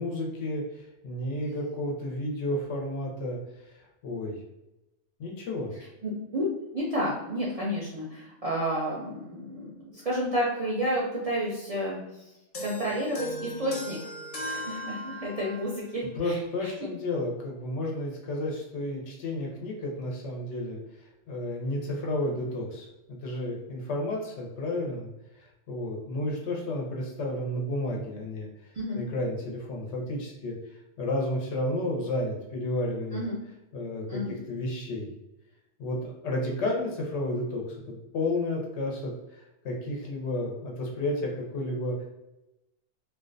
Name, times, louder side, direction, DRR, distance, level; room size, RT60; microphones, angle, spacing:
voice 1, 0.0-3.4 4.0-4.4 5.2-5.7 16.2-20.8 21.3-25.1 25.7-28.5 28.9-30.6 31.0-33.2 33.7-34.2 34.5-35.1 35.8-42.1, left 1 dB, 80° left, -1 dB, 1.0 m, -32 dB
voice 2, 6.0-6.5 6.7-12.0 12.6-14.0 14.4-16.7 28.7-29.0 33.1-33.4 34.1-34.4, equal, 55° right, -5 dB, 0.4 m, -31 dB
sound 1, 12.5-15.7, equal, 50° left, 0.4 m, -38 dB
2.4 x 2.2 x 2.4 m, 0.95 s
omnidirectional pair, 1.2 m